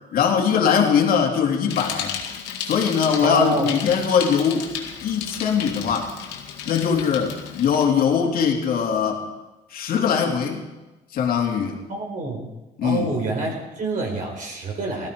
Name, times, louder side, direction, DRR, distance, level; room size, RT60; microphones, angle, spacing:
voice 1, 0.1-2.1 2.7-4.7 5.0-6.1 6.7-9.3 9.7-10.6 11.1-11.8 12.8-13.1, left 7 dB, 60° left, 1 dB, 2.8 m, -21 dB
Bicycle, 1.7-7.9, left 8 dB, 90° left, 2.1 m, -33 dB
voice 2, 3.2-3.7 11.9-12.5 12.8-15.1, right 2 dB, 50° right, 0 dB, 4.5 m, -27 dB
17.5 x 14.5 x 5.2 m, 1.1 s
cardioid pair, 110°, 17 cm